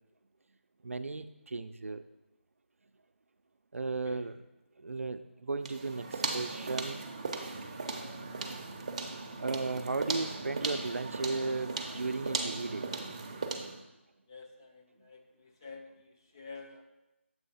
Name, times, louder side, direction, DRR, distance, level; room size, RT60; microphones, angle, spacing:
voice 1, 0.8-2.0 3.7-4.4 4.8-7.0 9.4-12.9 15.0-15.1, right 3 dB, 90° right, 10 dB, 0.4 m, -35 dB
voice 2, 3.8-4.2 13.6-13.7 14.3-16.8, left 4 dB, 20° left, 2 dB, 0.4 m, -50 dB
sound 1, 5.6-13.8, right 3 dB, 30° right, 0.5 m, -37 dB
7.4 x 3.2 x 5.5 m, 0.95 s
figure-of-eight pair, 170°, 7 cm